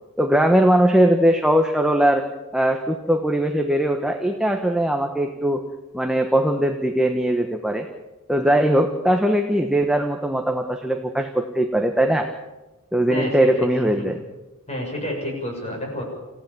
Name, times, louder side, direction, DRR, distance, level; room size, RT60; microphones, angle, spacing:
voice 1, 0.2-2.2 2.5-5.6 5.9-7.8 8.3-12.3 12.9-14.2, right 1 dB, 5° right, 4 dB, 1.2 m, -20 dB
voice 2, 13.1-13.7 14.0-14.1 14.7-16.0, left 1 dB, 30° left, 1 dB, 6.8 m, -29 dB
27.0 x 16.0 x 7.2 m, 1.1 s
head